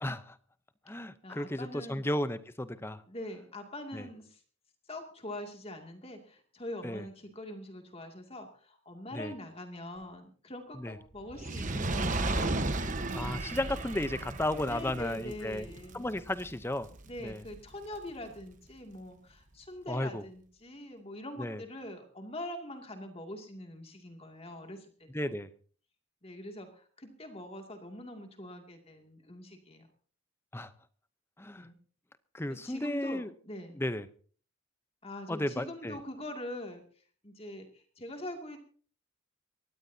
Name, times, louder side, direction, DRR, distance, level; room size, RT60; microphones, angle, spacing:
voice 1, 0.0-0.4 0.9-3.0 3.9-4.1 6.8-7.0 9.1-9.3 10.8-11.0 13.1-15.7 15.9-16.9 17.2-17.4 19.9-20.2 21.4-21.6 25.1-25.5 30.5-30.7 31.4-31.7 32.3-33.3 33.8-34.1 35.3-36.0, left 1 dB, 10° left, 13 dB, 0.7 m, -34 dB
voice 2, 1.2-2.1 3.1-4.4 4.9-12.7 14.7-16.1 17.1-25.4 26.2-29.9 31.6-31.7 32.5-33.8 35.0-36.8 37.2-38.6, left 1 dB, 25° left, 4 dB, 2.4 m, -43 dB
Fire, 11.3-17.7 18.4-18.5, right 2 dB, 35° right, 1.1 m, -35 dB
22.5 x 17.5 x 2.8 m, 0.42 s
head